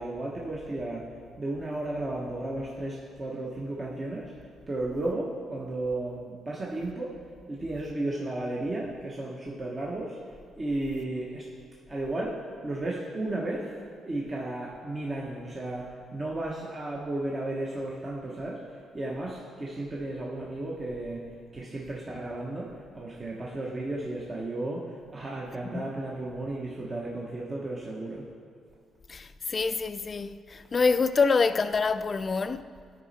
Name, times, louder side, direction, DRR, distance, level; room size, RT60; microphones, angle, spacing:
voice 1, 0.0-4.4 4.7-7.2 7.5-11.5 11.9-13.8 14.0-28.2, right 2 dB, 30° right, 1.1 m, -34 dB
voice 2, 29.1-32.7, left 4 dB, 35° left, 0.4 m, -26 dB
12.0 x 5.1 x 4.2 m
cardioid pair, 90°, 0 cm